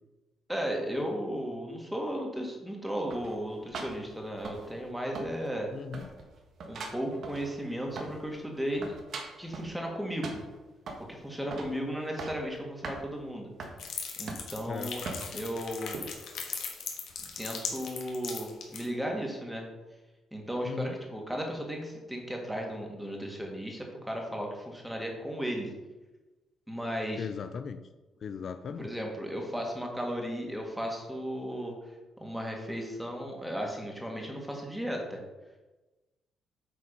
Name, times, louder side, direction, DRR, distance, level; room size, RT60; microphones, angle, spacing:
voice 1, 0.5-5.7 6.6-8.9 9.4-10.4 11.1-13.5 14.2-15.0 15.3-16.0 17.2-19.7 20.3-25.7 26.7-27.3 28.8-31.7 32.2-35.2, equal, 5° right, 0 dB, 2.0 m, -35 dB
sound 1, 3.1-4.9 5.2-5.7 5.9-8.3 8.6-9.7 10.2-11.1 11.5-11.8 12.0-12.5 12.8-13.0 13.6-13.8 14.3-14.7 15.1-15.4 15.9-16.1, right 3 dB, 60° right, 1.5 m, -41 dB
voice 2, 5.7-6.1 14.7-14.9 20.7-21.0 27.2-27.8 28.2-28.9, left 6 dB, 55° left, 9 dB, 0.4 m, -37 dB
sound 2, 13.8-18.9, left 6 dB, 75° left, 1.5 m, -38 dB
8.4 x 4.2 x 5.3 m, 1.1 s
cardioid pair, 90°, 0 cm